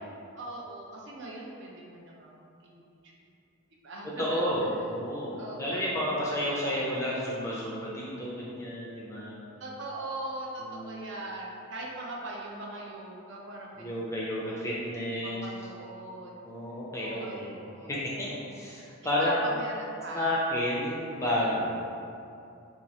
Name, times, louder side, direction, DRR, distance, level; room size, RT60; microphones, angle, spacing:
voice 1, 0.0-3.1 3.8-4.4 5.4-6.0 9.6-14.7 15.2-16.3 17.0-17.9 18.2-18.4 19.2-20.4, right 2 dB, 55° right, -3 dB, 0.5 m, -40 dB
voice 2, 4.2-9.4 10.6-11.0 13.8-15.5 16.4-17.5 17.8-19.3 20.1-21.7, left 1 dB, 15° left, -6 dB, 0.4 m, -31 dB
2.9 x 2.3 x 4.1 m, 2.6 s
head